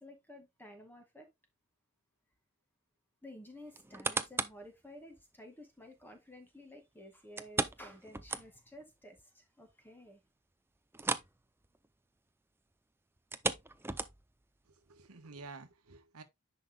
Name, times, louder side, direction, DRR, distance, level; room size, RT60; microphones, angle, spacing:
voice 1, 0.0-1.3 3.2-10.2, left 1 dB, 10° left, 2.0 m, -53 dB
sound 1, 3.7-4.7 5.2-5.3 7.4-8.8 9.2-9.3 9.7-9.8 10.9-11.4 11.6-11.9 13.2-14.4 15.0-15.1, right 3 dB, 10° right, 0.5 m, -36 dB
voice 2, 14.7-16.2, right 3 dB, 75° right, 1.3 m, -51 dB
10.5 x 5.6 x 2.3 m
head